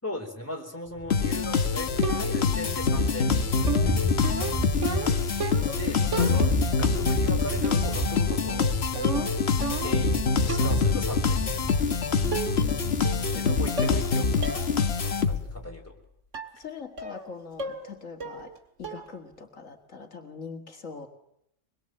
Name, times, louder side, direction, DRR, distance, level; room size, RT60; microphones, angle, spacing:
voice 1, 0.0-4.0 5.8-8.8 9.8-11.9 13.4-15.9, equal, 10° left, 1 dB, 4.1 m, -38 dB
Thunder, 0.9-13.6, equal, 25° right, 2.6 m, -33 dB
sound 1, 1.1-15.7, left 5 dB, 55° left, 1.4 m, -25 dB
sound 2, 2.0-2.6 3.7-5.8 6.1-6.8 7.6-8.1 8.3-10.1 10.5-10.9 11.8-11.9 12.3-12.8 13.1-13.5 13.8-14.1 14.4-14.7 15.1-15.2 16.3-16.6 17.0-17.3 17.6-17.9 18.2-18.6 18.8-19.2, right 4 dB, 70° right, 2.2 m, -34 dB
voice 2, 12.1-13.4 16.5-18.5 18.8-21.1, left 5 dB, 80° left, 4 dB, 2.3 m, -43 dB
25.0 x 21.5 x 7.7 m, 0.77 s
omnidirectional pair, 1.3 m